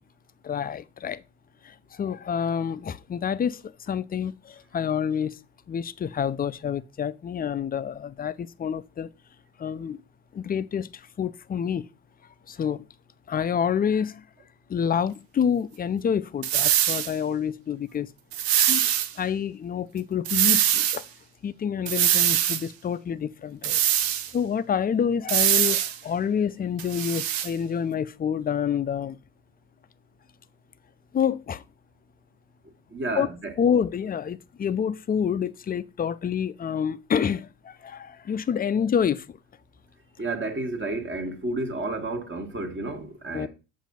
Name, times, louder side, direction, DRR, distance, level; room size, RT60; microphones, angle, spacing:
voice 1, 0.4-1.2 1.7-3.6 3.9-5.4 5.7-9.1 9.6-10.0 10.3-10.9 11.2-11.9 12.5-12.8 13.3-14.2 14.7-18.1 18.7-18.9 19.2-21.0 21.4-23.8 24.3-29.2 31.1-31.6 33.2-33.3 33.6-39.2 43.3-43.5, left 7 dB, 25° left, 0.4 m, -27 dB
sound 1, 16.4-17.1 18.3-19.1 20.3-21.0 21.9-22.6 23.6-24.3 25.3-26.0 26.8-27.5, right 11 dB, 65° right, 0.6 m, -22 dB
voice 2, 32.9-33.5 40.2-43.5, right 2 dB, 30° right, 1.4 m, -31 dB
7.3 x 2.6 x 5.3 m
hypercardioid pair, 45°, 38 cm